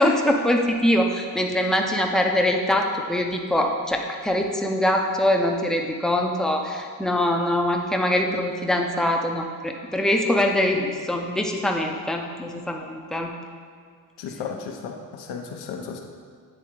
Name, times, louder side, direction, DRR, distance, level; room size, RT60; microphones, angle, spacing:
voice 1, 0.0-13.3, left 1 dB, ahead, 1 dB, 0.5 m, -23 dB
voice 2, 14.2-16.0, left 6 dB, 85° left, 2 dB, 0.9 m, -34 dB
8.7 x 3.8 x 4.6 m, 2.1 s
cardioid pair, 135°, 38 cm